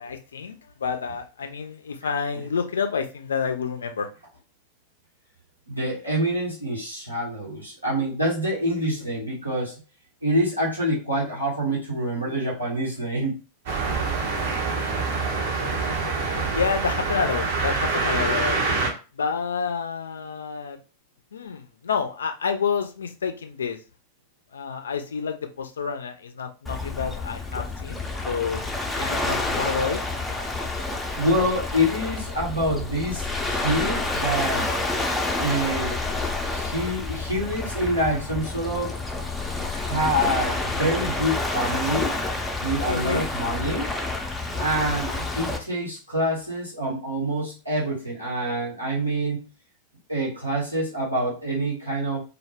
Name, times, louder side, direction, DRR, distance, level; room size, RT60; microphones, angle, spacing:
voice 1, 0.0-4.1 16.5-18.6 19.1-20.8 21.3-23.8 24.5-28.6 29.0-30.0 42.9-43.3, left 6 dB, 70° left, 6 dB, 0.3 m, -29 dB
voice 2, 5.7-9.8 10.2-13.3 31.1-34.7 35.4-36.0 36.4-38.9 39.7-42.1 42.6-43.9 44.6-49.5 50.1-52.2, equal, 85° right, -5 dB, 1.0 m, -26 dB
sound 1, 13.7-18.9, right 4 dB, 50° right, 0.6 m, -25 dB
Waves surf, 26.7-45.6, left 2 dB, 5° left, 0.4 m, -29 dB
2.1 x 2.1 x 3.2 m, 0.33 s
figure-of-eight pair, 90°, 0 cm